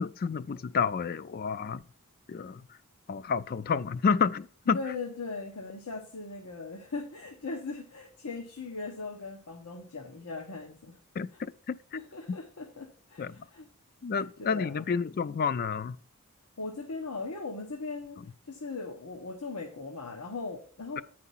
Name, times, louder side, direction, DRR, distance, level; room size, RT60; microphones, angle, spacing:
voice 1, 0.0-1.8 2.3-2.6 3.1-4.8 11.2-11.8 12.3-12.4 13.2-13.4 14.0-16.0 18.2-18.3, left 5 dB, 40° left, 0.3 m, -30 dB
voice 2, 4.7-11.0 11.9-13.7 14.1-14.9 16.6-21.0, left 3 dB, 90° left, 1.1 m, -39 dB
9.3 x 4.8 x 5.5 m
head